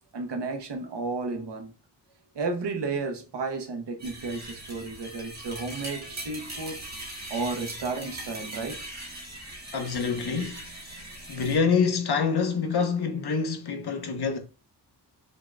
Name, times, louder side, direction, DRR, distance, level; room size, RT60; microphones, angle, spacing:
voice 1, 0.1-1.7 2.3-6.8 7.3-8.9, right 3 dB, 80° right, 1.0 m, -32 dB
sound 1, 4.0-11.6, right 1 dB, 40° right, 1.8 m, -40 dB
voice 2, 9.7-10.6 10.9-11.0 11.3-14.4, left 5 dB, 65° left, 1.0 m, -26 dB
5.6 x 3.8 x 2.2 m
wide cardioid pair, 140°, 42 cm